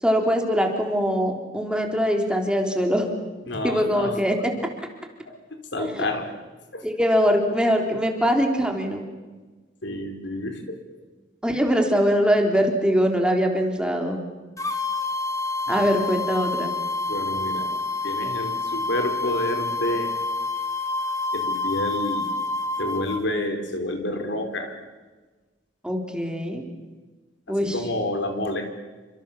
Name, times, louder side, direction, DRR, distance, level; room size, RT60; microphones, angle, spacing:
voice 1, 0.0-3.1 3.6-4.5 4.8-4.9 5.8-6.1 6.8-9.0 11.4-14.2 15.7-16.7 25.8-26.6 27.5-27.8, equal, 5° right, 3 dB, 3.6 m, -22 dB
voice 2, 3.5-4.2 5.3-6.3 6.7-6.8 9.8-10.6 15.7-15.9 17.1-17.7 18.0-20.1 21.3-22.3 22.8-24.8 27.6-28.7, left 1 dB, 70° left, 6 dB, 4.4 m, -29 dB
sound 1, 14.6-23.2, left 3 dB, 15° left, 2.5 m, -28 dB
29.0 x 26.0 x 7.4 m, 1.3 s
head